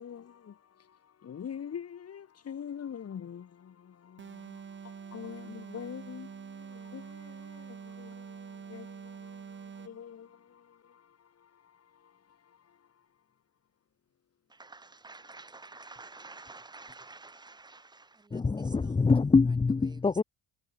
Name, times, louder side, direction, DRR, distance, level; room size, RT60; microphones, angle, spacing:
voice 1, 0.0-13.0, left 8 dB, 35° left, 4.4 m, -45 dB
sound 1, 4.2-10.1, right 7 dB, 25° right, 2.1 m, -46 dB
voice 2, 14.5-18.7 19.9-20.0, right 3 dB, 10° right, 1.1 m, -49 dB
voice 3, 18.3-20.2, left 4 dB, 10° left, 0.8 m, -24 dB
cardioid pair, 145°, 44 cm